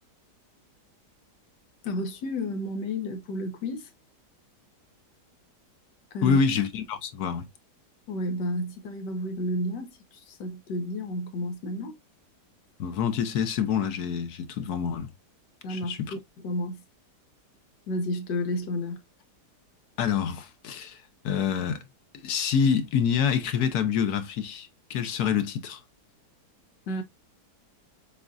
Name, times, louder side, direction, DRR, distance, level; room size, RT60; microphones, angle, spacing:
voice 1, 1.8-3.9 6.1-6.4 8.1-11.9 15.6-16.8 17.9-19.0 26.9-27.0, left 1 dB, 90° left, 1.6 m, -31 dB
voice 2, 6.2-7.4 12.8-15.1 15.7-16.1 20.0-21.8 22.2-25.8, left 7 dB, 70° left, 1.2 m, -27 dB
7.0 x 2.4 x 2.4 m
omnidirectional pair, 1.8 m